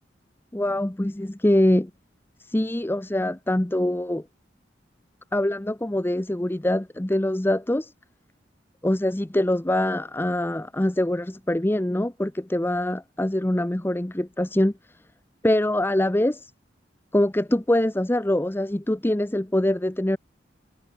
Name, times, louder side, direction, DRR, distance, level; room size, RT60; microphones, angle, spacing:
voice 1, 0.5-1.9 2.5-4.2 5.3-7.9 8.8-14.7 15.4-16.5 17.1-20.2, left 1 dB, 10° left, 0.7 m, -24 dB
head